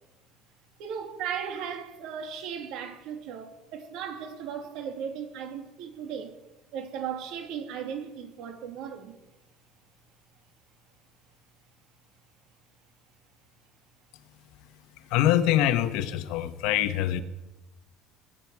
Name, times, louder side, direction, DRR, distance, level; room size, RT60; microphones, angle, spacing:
voice 1, 0.8-6.4 6.7-9.2, right 7 dB, 65° right, 2.4 m, -36 dB
voice 2, 15.1-17.2, left 12 dB, 75° left, 1.1 m, -24 dB
22.0 x 12.0 x 4.8 m
cardioid pair, 145°, 0 cm